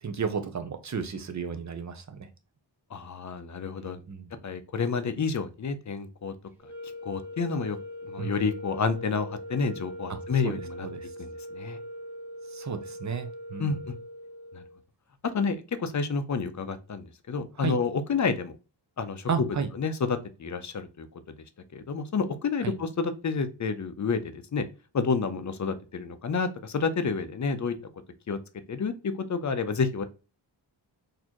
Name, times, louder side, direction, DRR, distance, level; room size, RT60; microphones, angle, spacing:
voice 1, 0.0-2.3 3.8-4.3 8.2-8.4 10.1-10.2 10.4-11.1 12.5-13.8 17.6-17.8 19.3-19.7 22.6-22.8, right 6 dB, 40° right, 8 dB, 0.6 m, -33 dB
voice 2, 2.9-4.0 4.4-6.3 7.1-7.8 8.1-10.9 11.2-11.8 13.6-13.9 14.5-14.6 15.3-18.5 19.0-19.3 19.8-21.1 21.7-24.2 24.5-24.6 24.9-27.8 28.3-28.4 28.7-30.0, left 5 dB, 40° left, 10 dB, 0.5 m, -29 dB
sound 1, 6.6-14.8, equal, 5° right, 0.9 m, -41 dB
4.1 x 2.7 x 2.9 m, 0.32 s
wide cardioid pair, 120°, 46 cm